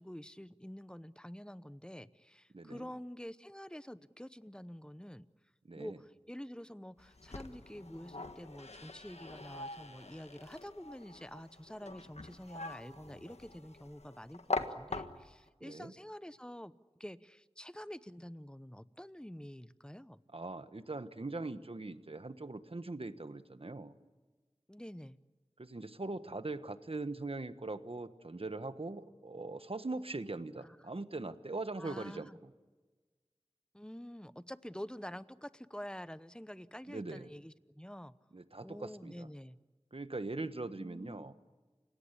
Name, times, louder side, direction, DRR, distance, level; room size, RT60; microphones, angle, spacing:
voice 1, 0.0-5.3 5.8-20.2 24.7-25.2 30.6-30.8 31.8-32.4 33.7-38.1 38.6-39.6 40.8-41.3, equal, 10° left, 15 dB, 0.9 m, -48 dB
voice 2, 2.5-2.9 5.6-6.0 15.6-15.9 20.3-23.9 25.6-32.5 36.9-37.3 38.3-39.3 39.9-41.3, right 2 dB, 60° right, 11 dB, 1.3 m, -41 dB
sound 1, 7.0-15.5, left 3 dB, 85° left, 1.5 m, -43 dB
29.0 x 17.5 x 10.0 m, 1.3 s
wide cardioid pair, 45°, 11 cm